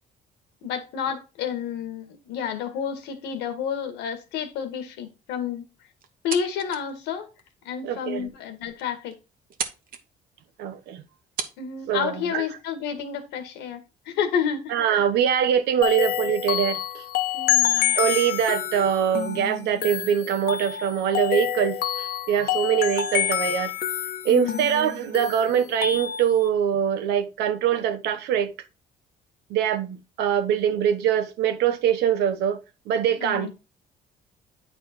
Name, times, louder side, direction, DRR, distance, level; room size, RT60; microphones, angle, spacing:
voice 1, 0.6-5.6 6.2-7.3 7.6-9.1 11.6-14.7 17.3-18.0 24.3-24.7 33.2-33.5, left 7 dB, 85° left, 1.8 m, -30 dB
sound 1, 6.0-6.9 7.4-7.5 8.1-8.2 8.5-8.6 8.8-9.2 9.5-10.0 10.9-11.0 11.4-11.6, right 7 dB, 60° right, 1.3 m, -33 dB
voice 2, 7.8-8.3 10.6-11.0 11.9-12.4 14.7-17.0 18.0-23.7 24.2-28.5 29.5-32.6 32.9-33.5, right 9 dB, 80° right, 1.1 m, -23 dB
sound 2, 15.8-26.5, left 11 dB, 65° left, 1.1 m, -27 dB
9.2 x 4.3 x 4.3 m
cardioid pair, 110°, 17 cm